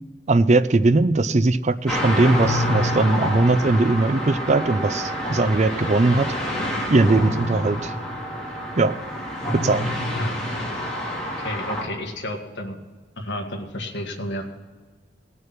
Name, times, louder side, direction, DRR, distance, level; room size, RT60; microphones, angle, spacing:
voice 1, 0.3-6.3 6.9-7.9 8.8-9.0 9.5-9.9, right 2 dB, 40° right, 13 dB, 0.5 m, -19 dB
sound 1, 1.9-11.8, equal, 5° left, 3.0 m, -27 dB
voice 2, 11.4-12.8 13.2-14.4, left 1 dB, 65° left, 2 dB, 1.8 m, -31 dB
18.5 x 6.5 x 5.9 m, 1.4 s
head